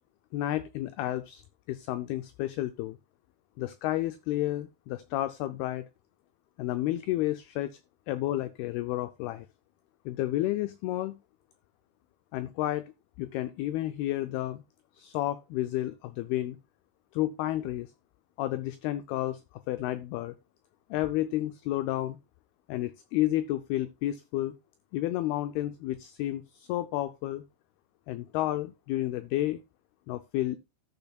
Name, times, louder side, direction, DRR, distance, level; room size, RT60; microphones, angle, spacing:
voice 1, 0.3-1.4 1.7-3.0 3.6-5.9 6.6-7.8 8.1-9.5 10.1-11.2 12.3-12.9 13.2-14.6 14.9-16.6 17.1-17.9 18.4-19.4 19.7-20.4 20.9-22.2 22.7-24.6 24.9-27.4 28.1-29.6 30.1-30.6, left 15 dB, 85° left, 2.2 m, -31 dB
14.0 x 7.1 x 2.3 m
omnidirectional pair, 5.0 m